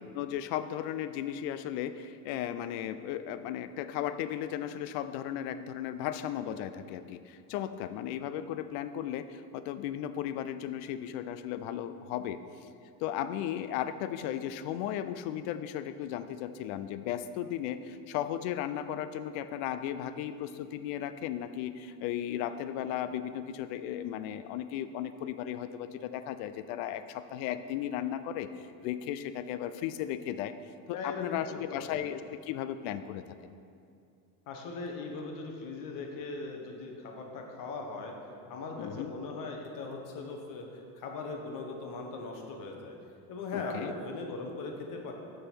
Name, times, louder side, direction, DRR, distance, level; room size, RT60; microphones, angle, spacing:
voice 1, 0.1-12.4 13.0-28.5 28.8-30.5 30.9-33.4 38.8-39.1 43.5-43.9, left 10 dB, 65° left, 12 dB, 0.5 m, -35 dB
voice 2, 30.9-31.9 34.5-38.1 38.5-42.9 43.3-45.1, left 3 dB, 45° left, 2 dB, 1.1 m, -39 dB
6.6 x 3.9 x 6.1 m, 2.4 s
supercardioid pair, 125°, 44 cm